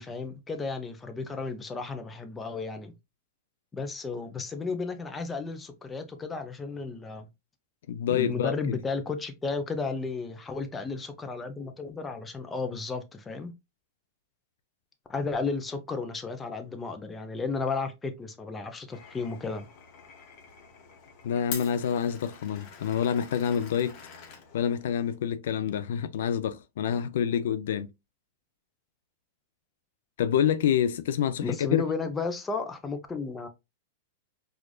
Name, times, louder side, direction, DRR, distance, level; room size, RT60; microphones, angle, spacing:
voice 1, 0.0-2.9 3.7-7.3 8.1-13.5 15.1-19.7 31.4-33.5, left 4 dB, 15° left, 0.6 m, -33 dB
voice 2, 7.9-8.8 21.2-24.0 24.5-27.9 30.2-31.8, left 8 dB, 75° left, 0.3 m, -27 dB
Glass, 18.9-25.2, left 6 dB, 50° left, 1.0 m, -45 dB
4.7 x 2.5 x 2.2 m
hypercardioid pair, 120°, 0 cm